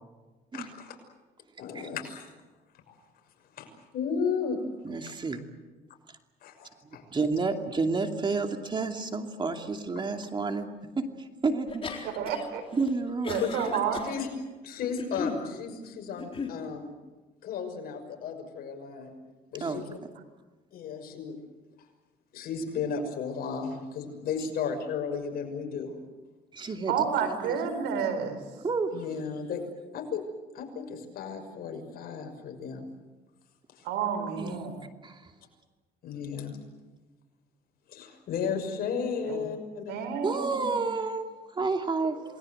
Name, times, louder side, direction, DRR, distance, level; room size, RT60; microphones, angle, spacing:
voice 1, 0.5-1.0 1.6-2.3 2.9-3.0 3.6-4.6 6.4-7.0 13.4-13.6 13.9-14.3 14.6-16.9 17.4-19.1 19.5-20.0 20.7-21.4 22.3-25.9 28.9-29.6 29.9-30.3 30.5-32.8 33.8-33.9 36.0-36.6 37.9-40.0, left 6 dB, 65° left, 4 dB, 6.2 m, -34 dB
voice 2, 4.8-5.4 7.1-10.7 11.0-12.1 12.7-13.4 19.6-19.8 26.5-27.5 28.6-28.9 34.4-35.2 40.2-41.3 41.6-42.2, right 4 dB, 30° right, 5 dB, 2.7 m, -30 dB
sound 1, 11.7-12.5 12.8-14.2 14.8-15.5 16.2-16.6, left 5 dB, 30° left, 4.2 m, -36 dB
voice 3, 12.0-12.6 13.2-14.0 26.9-28.4 33.8-34.7 39.3-39.4 39.9-40.7, right 7 dB, 90° right, 8 dB, 4.8 m, -30 dB
28.5 x 20.5 x 8.0 m, 1.2 s
cardioid pair, 110°, 17 cm